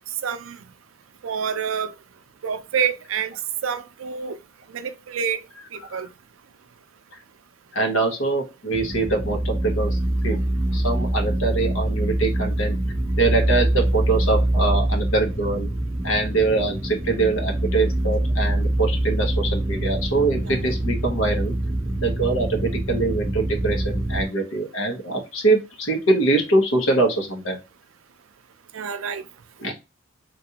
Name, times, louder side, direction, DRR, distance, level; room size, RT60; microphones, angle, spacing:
voice 1, 0.2-0.6 1.2-1.9 2.4-3.3 3.6-4.4 4.7-5.4 5.7-6.1 20.4-20.6 28.7-29.2, right 7 dB, 80° right, 0.5 m, -27 dB
voice 2, 7.7-10.0 10.2-10.4 10.7-12.7 13.2-15.7 16.0-21.5 22.0-27.6 29.6-29.7, right 2 dB, 90° left, 1.1 m, -23 dB
sound 1, 8.7-24.2, right 1 dB, 20° right, 0.4 m, -24 dB
3.1 x 2.5 x 2.8 m
head